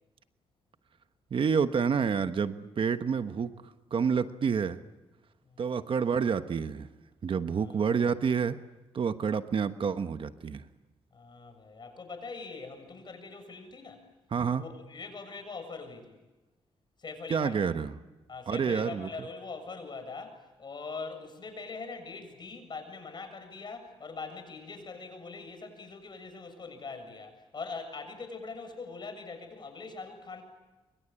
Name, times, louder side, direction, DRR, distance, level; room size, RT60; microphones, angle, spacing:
voice 1, 1.3-3.5 3.9-4.8 5.6-6.9 7.2-8.6 8.9-10.6 14.3-14.6 17.3-17.9 18.5-19.1, right 6 dB, 55° right, 10 dB, 1.2 m, -28 dB
voice 2, 7.5-7.9 11.1-14.0 14.5-16.2 17.0-17.6 18.3-30.4, left 4 dB, 45° left, 7 dB, 7.4 m, -42 dB
27.0 x 24.5 x 8.8 m, 1.1 s
cardioid pair, 90°, 11 cm